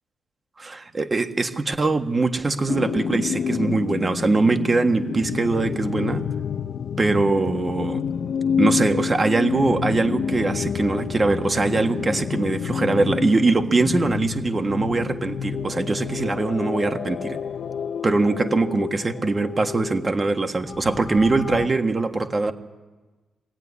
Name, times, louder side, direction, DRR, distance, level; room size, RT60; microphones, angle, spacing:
voice 1, 0.6-6.2 7.0-8.0 8.6-17.4 18.0-22.5, right 3 dB, 25° right, 6 dB, 1.6 m, -22 dB
sound 1, 2.7-21.7, left 7 dB, 55° left, 0.7 m, -29 dB
23.5 x 17.5 x 9.7 m, 1.3 s
cardioid pair, 115°, 0 cm